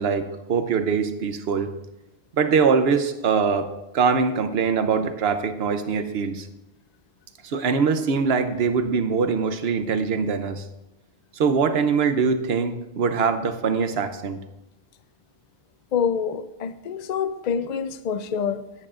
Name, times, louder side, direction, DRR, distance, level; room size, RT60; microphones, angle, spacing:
voice 1, 0.0-1.7 2.4-3.7 3.9-6.5 7.4-10.6 11.4-14.4, right 5 dB, 75° right, 1.0 m, -23 dB
voice 2, 15.9-18.6, left 7 dB, 55° left, 0.6 m, -26 dB
15.0 x 9.5 x 2.5 m
omnidirectional pair, 1.1 m